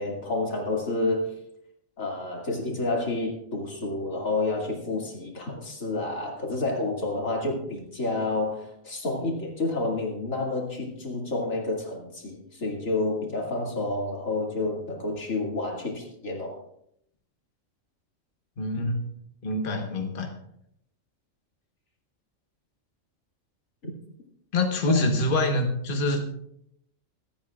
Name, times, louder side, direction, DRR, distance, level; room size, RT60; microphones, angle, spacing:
voice 1, 0.0-1.3 2.0-16.6 24.9-25.1, left 2 dB, 85° left, -1 dB, 2.8 m, -29 dB
voice 2, 18.6-19.0 19.4-20.3 24.5-26.3, left 2 dB, 45° left, 3 dB, 1.4 m, -25 dB
25.0 x 8.7 x 2.4 m, 0.73 s
omnidirectional pair, 1.4 m